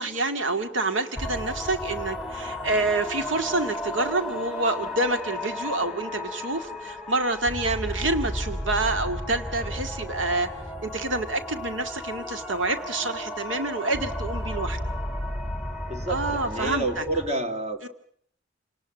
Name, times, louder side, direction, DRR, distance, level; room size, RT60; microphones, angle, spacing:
voice 1, 0.0-10.5 10.8-14.8 16.1-17.0 17.8-17.9, right 2 dB, 80° right, 7 dB, 2.1 m, -27 dB
sound 1, 1.2-17.3, left 1 dB, ahead, 3.3 m, -33 dB
voice 2, 15.9-17.9, right 2 dB, 35° right, 6 dB, 3.0 m, -29 dB
29.0 x 19.5 x 8.9 m, 0.64 s
head